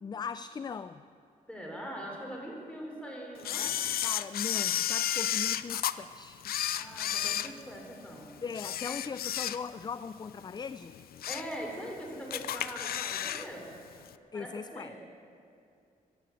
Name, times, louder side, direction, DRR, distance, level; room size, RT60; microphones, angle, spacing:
voice 1, 0.0-1.0 4.0-6.5 8.4-11.0 14.3-15.0, left 6 dB, 30° left, 13 dB, 0.3 m, -39 dB
voice 2, 1.5-3.7 6.7-8.3 11.3-13.7 14.3-15.0, equal, 5° left, -1 dB, 3.8 m, -42 dB
Camera, 3.4-5.9 6.4-8.1 8.5-9.9 10.3-10.4 10.9-11.5 11.9-12.0 12.3-13.5 13.7-13.8, left 11 dB, 85° left, 0.5 m, -32 dB
15.0 x 10.5 x 7.7 m, 2.5 s
cardioid pair, 105°, 15 cm